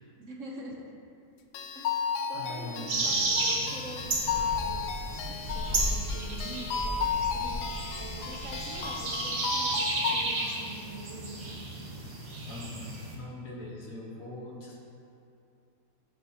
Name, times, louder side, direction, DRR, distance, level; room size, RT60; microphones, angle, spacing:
voice 1, 0.2-0.9 1.7-1.9 2.3-4.8 5.1-7.6 8.0-12.0, right 2 dB, 55° right, -1 dB, 1.2 m, -44 dB
sound 1, 1.5-10.6, left 6 dB, 85° left, 1.2 m, -34 dB
voice 2, 2.3-3.1 12.5-14.8, left 2 dB, 60° left, -3 dB, 1.8 m, -41 dB
sound 2, 2.9-13.1, right 2 dB, 85° right, 1.9 m, -33 dB
sound 3, 4.1-9.0, equal, ahead, 0.8 m, -37 dB
15.0 x 6.1 x 2.9 m, 2.6 s
omnidirectional pair, 1.7 m